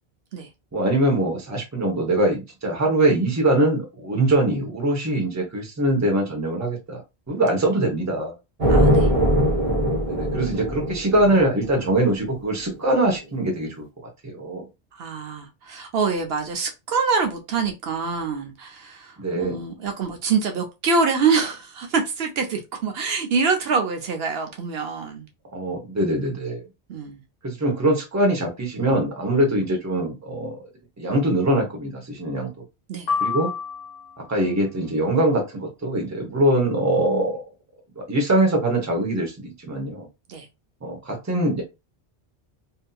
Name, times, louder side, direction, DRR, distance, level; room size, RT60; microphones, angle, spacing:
voice 1, 0.7-7.0 7.3-8.3 10.1-13.9 14.2-14.6 19.2-19.6 25.5-26.6 27.4-30.6 31.0-32.5 33.2-33.5 34.3-37.4 38.0-40.1 40.8-41.6, right 1 dB, 20° right, 0.7 m, -22 dB
sound 1, 8.6-12.3, equal, 40° right, 1.0 m, -21 dB
voice 2, 8.7-9.1 14.9-25.3 26.9-27.2 32.9-33.1 40.3-40.5, right 5 dB, 70° right, 0.8 m, -25 dB
sound 2, 33.1-34.4, left 5 dB, 60° left, 0.8 m, -28 dB
2.7 x 2.6 x 2.2 m
omnidirectional pair, 1.1 m